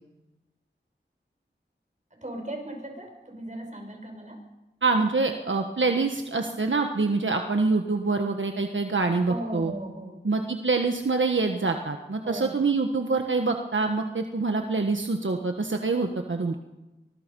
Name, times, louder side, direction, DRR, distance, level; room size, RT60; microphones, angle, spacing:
voice 1, 2.2-4.4 9.3-10.2 12.2-12.6 16.5-16.6, right 1 dB, 40° right, 3 dB, 6.0 m, -37 dB
voice 2, 4.8-9.7 10.2-16.6, right 3 dB, 75° right, 4 dB, 1.4 m, -25 dB
24.0 x 20.5 x 5.5 m, 1.1 s
wide cardioid pair, 55°, 20 cm